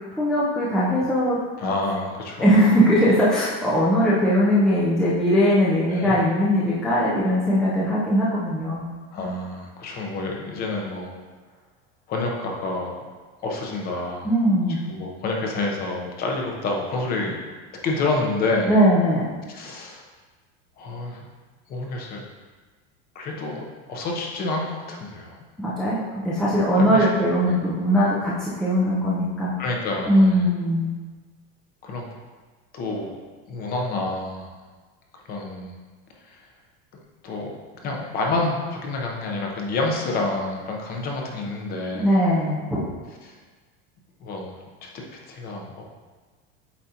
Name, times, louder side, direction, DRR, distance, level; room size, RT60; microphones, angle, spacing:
voice 1, 0.2-1.4 2.4-8.8 14.2-14.8 18.7-19.4 25.6-29.5 30.1-30.9 42.0-42.8, equal, ahead, -8 dB, 0.5 m, -20 dB
voice 2, 1.6-2.5 5.8-6.2 9.1-11.2 12.1-12.9 13.4-14.3 14.9-17.4 17.8-18.7 19.5-20.0 20.8-21.3 21.7-22.2 23.1-23.6 23.9-25.4 26.7-27.1 27.4-27.6 29.6-30.4 31.8-32.1 32.7-33.2 33.5-34.5 35.3-35.7 36.2-36.4 37.2-37.5 37.8-42.1 43.2-43.4 44.2-45.8, left 2 dB, 30° left, 0 dB, 0.8 m, -28 dB
8.3 x 4.0 x 2.8 m, 1.4 s
supercardioid pair, 165°, 32 cm